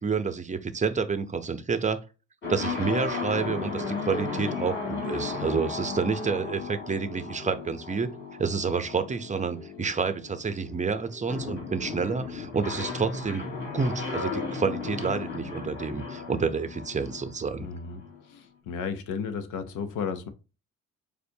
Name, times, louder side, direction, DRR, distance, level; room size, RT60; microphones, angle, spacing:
voice 1, 0.0-2.0 2.5-8.1 8.4-17.7, right 5 dB, 25° right, 0.6 m, -29 dB
sound 1, 2.4-18.2, left 4 dB, 40° left, 2.4 m, -35 dB
voice 2, 17.6-18.0 18.3-20.3, left 6 dB, 90° left, 0.7 m, -33 dB
6.7 x 2.4 x 2.7 m
cardioid pair, 90°, 30 cm